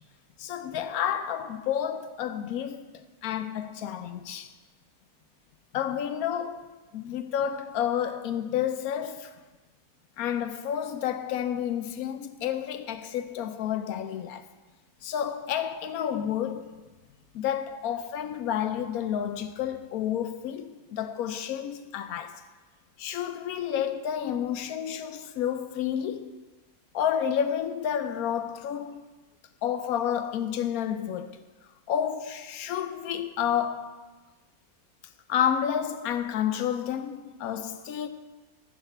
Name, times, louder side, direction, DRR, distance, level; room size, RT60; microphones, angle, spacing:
voice 1, 0.4-2.9 3.2-4.5 5.7-6.7 6.9-9.3 10.2-14.4 15.0-16.8 17.3-22.4 23.0-26.4 26.9-29.0 29.6-31.4 31.9-34.1 35.3-38.1, left 9 dB, 90° left, 1.1 m, -30 dB
12.5 x 4.1 x 6.8 m
omnidirectional pair, 1.5 m